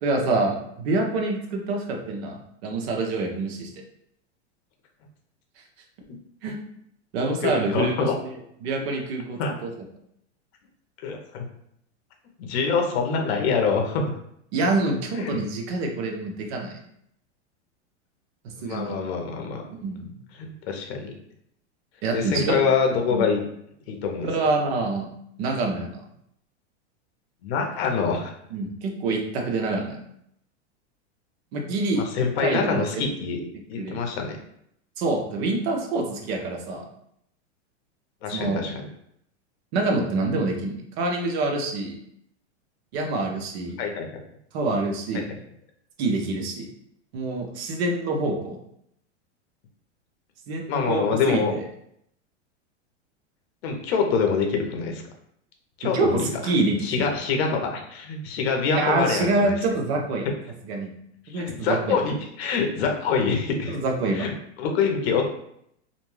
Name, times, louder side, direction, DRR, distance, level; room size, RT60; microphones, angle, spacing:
voice 1, 0.0-2.4 2.6-3.7 6.4-6.6 7.1-8.3 8.6-9.7 14.5-16.8 18.6-18.9 19.8-20.1 22.0-22.6 23.1-23.3 24.2-25.1 25.4-26.0 28.5-30.0 31.5-32.0 32.4-32.9 33.8-34.0 35.0-36.8 38.3-38.6 39.7-42.0 42.9-43.8 44.5-45.2 46.0-46.7 47.1-48.6 50.5-51.6 55.9-56.9 58.7-60.3 60.6-60.9 61.3-62.0 63.7-64.2, right 2 dB, 60° right, 2 dB, 0.7 m, -26 dB
voice 2, 7.4-8.1 9.4-9.5 11.0-11.4 12.4-14.1 15.2-15.4 18.6-19.6 20.4-21.1 22.1-23.4 23.9-24.3 27.4-28.3 31.9-33.4 33.7-34.4 38.2-38.8 43.8-44.2 45.1-45.4 50.7-51.5 53.6-55.0 55.8-56.3 56.8-59.6 61.3-63.8 64.1-64.3 64.6-65.2, left 5 dB, 60° left, 3 dB, 0.7 m, -25 dB
2.5 x 2.2 x 3.1 m, 0.72 s
supercardioid pair, 150°, 36 cm